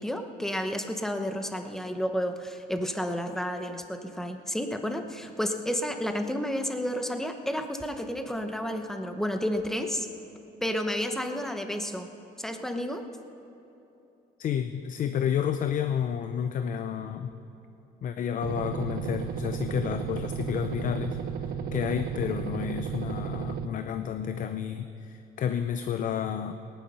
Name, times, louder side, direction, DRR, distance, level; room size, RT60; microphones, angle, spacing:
voice 1, 0.0-10.1 10.6-12.1 12.4-13.0, equal, ahead, 6 dB, 1.0 m, -31 dB
voice 2, 14.4-17.3 18.0-21.2 21.7-26.5, left 8 dB, 50° left, 9 dB, 0.6 m, -30 dB
sound 1, 18.4-23.7, right 7 dB, 65° right, 0.8 m, -33 dB
18.5 x 10.5 x 5.5 m, 3.0 s
cardioid pair, 110°, 17 cm